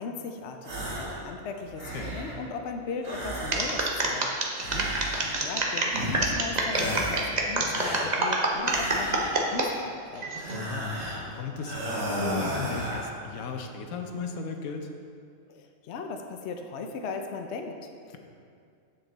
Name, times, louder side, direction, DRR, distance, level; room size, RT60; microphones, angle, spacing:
voice 1, 0.0-4.3 5.2-10.2 15.5-18.2, left 4 dB, 60° left, 4 dB, 0.8 m, -38 dB
sound 1, 0.6-1.2 1.6-2.4 3.0-4.1 4.6-5.6 5.9-6.4 6.7-7.4 7.7-9.6 10.3-11.3 11.6-13.1, equal, 80° right, 2.2 m, -34 dB
sound 2, 3.5-9.7 10.2-10.6, right 2 dB, 35° right, 0.9 m, -27 dB
voice 2, 10.5-14.9, left 5 dB, 75° left, 4 dB, 1.2 m, -37 dB
9.0 x 7.5 x 4.0 m, 2.3 s
omnidirectional pair, 1.5 m